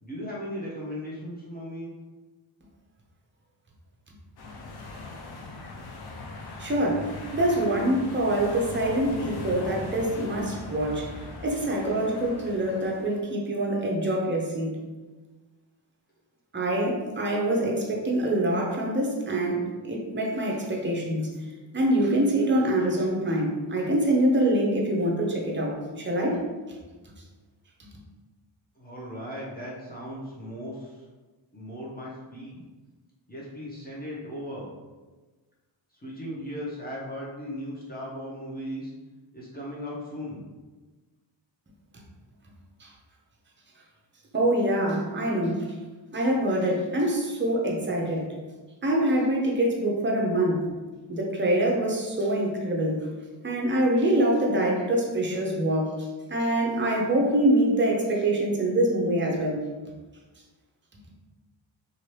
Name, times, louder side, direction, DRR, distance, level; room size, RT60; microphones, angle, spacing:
voice 1, 0.0-1.9 28.8-31.0 31.5-32.6 33.3-34.7 36.0-38.9 39.3-40.4, equal, 20° left, -6 dB, 0.8 m, -37 dB
sound 1, 4.4-13.2, left 3 dB, 55° left, 0.6 m, -40 dB
voice 2, 6.6-14.7 16.5-21.2 21.7-26.4 42.8-42.9 44.3-45.7 46.1-48.3 48.8-50.7 51.1-53.1 53.4-55.9 56.3-59.6, right 1 dB, 25° right, -2 dB, 0.7 m, -25 dB
2.8 x 2.6 x 3.2 m, 1.3 s
wide cardioid pair, 90°, 48 cm